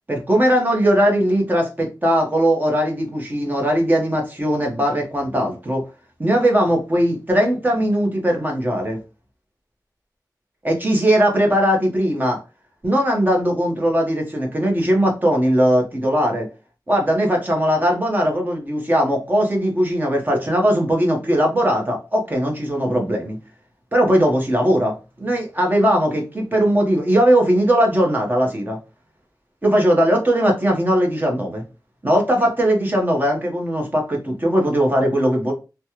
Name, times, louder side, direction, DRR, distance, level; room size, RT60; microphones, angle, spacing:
voice 1, 0.1-5.8 6.2-9.0 10.6-12.4 12.8-16.5 16.9-23.4 23.9-28.8 29.6-31.6 32.0-35.5, equal, 25° right, 1.1 m, -19 dB
3.2 x 2.2 x 2.9 m
wide cardioid pair, 90°, 7 cm